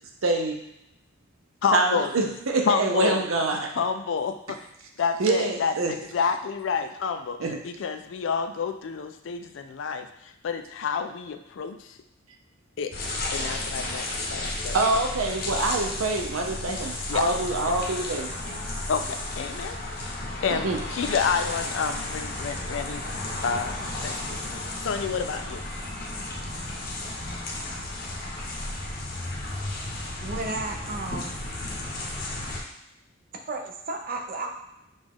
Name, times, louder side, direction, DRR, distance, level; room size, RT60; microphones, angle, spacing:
voice 1, 0.2-0.6 1.7-3.7 5.2-5.9 7.4-7.6 14.7-18.3 20.5-20.8, right 2 dB, 85° right, 2 dB, 0.7 m, -25 dB
voice 2, 1.6-2.1 2.7-3.2 3.8-4.6 5.0-7.4 7.6-12.0 12.8-12.9 13.3-14.8 17.1-17.3 18.9-23.0 23.4-23.8 24.0-25.6, left 6 dB, 65° left, 8 dB, 0.4 m, -29 dB
sound 1, 12.9-32.6, left 2 dB, 50° left, 0.8 m, -33 dB
voice 3, 30.2-31.3 33.5-34.5, right 2 dB, 45° right, 2 dB, 0.6 m, -33 dB
5.2 x 2.4 x 3.5 m, 0.85 s
head